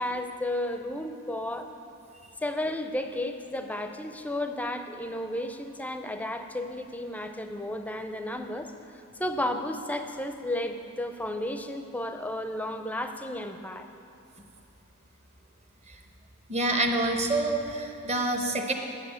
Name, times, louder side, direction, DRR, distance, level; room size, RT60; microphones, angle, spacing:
voice 1, 0.0-1.7 2.4-8.7 9.2-13.9, left 1 dB, 5° left, 7 dB, 0.5 m, -33 dB
voice 2, 16.5-18.7, right 2 dB, 30° right, 4 dB, 0.9 m, -27 dB
8.4 x 6.7 x 8.4 m, 2.8 s
head